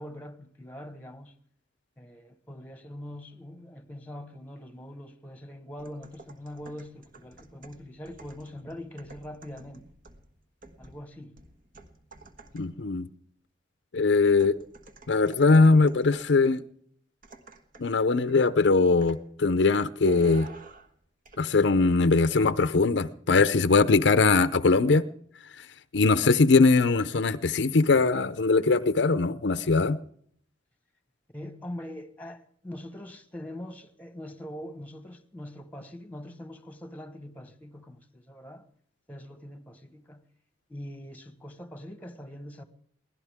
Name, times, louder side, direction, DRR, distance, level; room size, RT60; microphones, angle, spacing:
voice 1, 0.0-1.3 2.0-9.9 10.8-11.4 31.3-38.6 39.1-40.2 40.7-42.6, left 1 dB, 10° left, 1.3 m, -43 dB
sound 1, 5.8-12.9 14.4-16.4 17.2-18.0 18.3-18.5 19.0-19.3 20.1-21.0 21.3-21.4, right 2 dB, 50° right, 1.4 m, -48 dB
voice 2, 12.5-13.1 13.9-14.6 15.1-16.6 17.8-20.5 21.4-25.1 25.6-25.7 25.9-30.0, left 3 dB, 65° left, 0.6 m, -21 dB
23.0 x 17.0 x 3.6 m
head